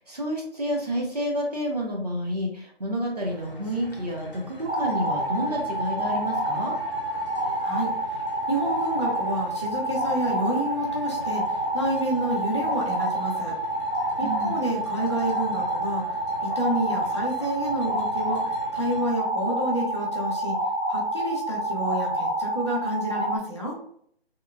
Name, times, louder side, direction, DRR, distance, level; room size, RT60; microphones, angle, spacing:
voice 1, 0.0-6.7 14.2-14.6, equal, 40° right, -1 dB, 0.6 m, -29 dB
sound 1, 3.2-19.1, left 1 dB, 60° left, 0.8 m, -43 dB
sound 2, 4.7-23.4, right 1 dB, 85° right, 1.1 m, -28 dB
voice 2, 8.5-13.5 14.2-16.0 16.4-20.6 20.9-23.8, right 1 dB, 30° left, -4 dB, 0.5 m, -29 dB
2.9 x 2.0 x 2.3 m, 0.65 s
figure-of-eight pair, 170°, 31 cm